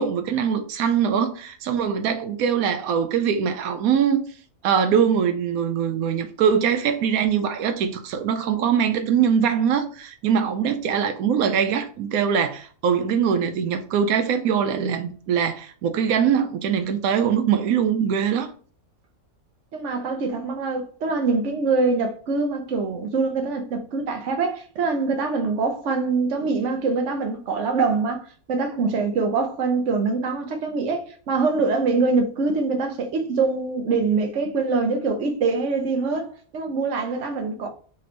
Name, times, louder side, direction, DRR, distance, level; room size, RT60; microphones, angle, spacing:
voice 1, 0.0-4.2 4.6-18.5, right 7 dB, 85° right, 1.0 m, -22 dB
voice 2, 19.7-37.7, right 4 dB, 60° right, 1.1 m, -24 dB
4.2 x 3.2 x 3.8 m
omnidirectional pair, 1.5 m